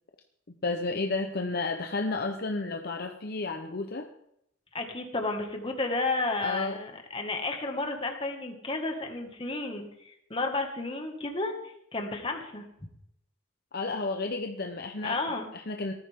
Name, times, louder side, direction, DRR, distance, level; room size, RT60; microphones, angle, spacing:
voice 1, 0.5-4.1 6.4-6.8 13.7-15.9, left 3 dB, 50° left, 5 dB, 0.9 m, -32 dB
voice 2, 4.7-11.5 11.9-12.6 15.0-15.5, left 2 dB, 25° left, 4 dB, 2.0 m, -32 dB
18.0 x 14.0 x 3.8 m, 0.76 s
head